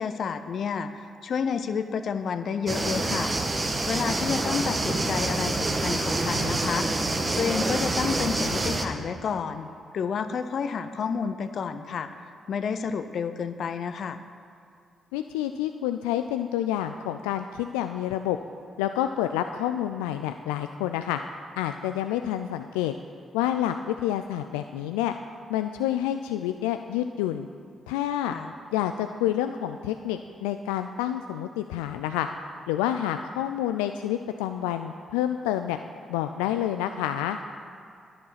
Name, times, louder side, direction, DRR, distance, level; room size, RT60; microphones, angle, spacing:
voice 1, 0.0-3.3 3.9-6.9 7.4-12.1 12.5-14.2 28.3-28.5, left 6 dB, 60° left, 10 dB, 0.7 m, -30 dB
sound 1, 2.7-8.9, right 2 dB, 35° right, 1.6 m, -27 dB
voice 2, 15.1-18.4 18.8-21.2 21.6-22.9 23.3-25.1 25.5-27.5 27.9-28.3 28.7-32.3 32.7-35.8 36.1-37.4, left 11 dB, 80° left, 8 dB, 0.3 m, -28 dB
11.0 x 11.0 x 5.8 m, 2.4 s
hypercardioid pair, 40°, 0 cm